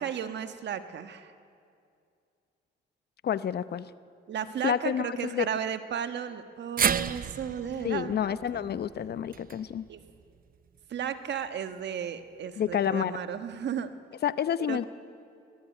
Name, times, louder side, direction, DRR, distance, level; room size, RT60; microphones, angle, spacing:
voice 1, 0.0-1.3 4.3-8.7 9.9-10.0 10.9-13.9 14.6-14.8, right 8 dB, 60° right, 9 dB, 1.4 m, -34 dB
voice 2, 3.2-3.9 4.6-5.5 7.8-9.9 12.6-13.2 14.2-14.8, left 9 dB, 55° left, 15 dB, 0.8 m, -29 dB
sound 1, 6.8-11.0 11.4-11.5 12.7-12.8, right 8 dB, 45° right, 0.7 m, -33 dB
23.0 x 20.0 x 9.2 m, 2.4 s
cardioid pair, 90°, 20 cm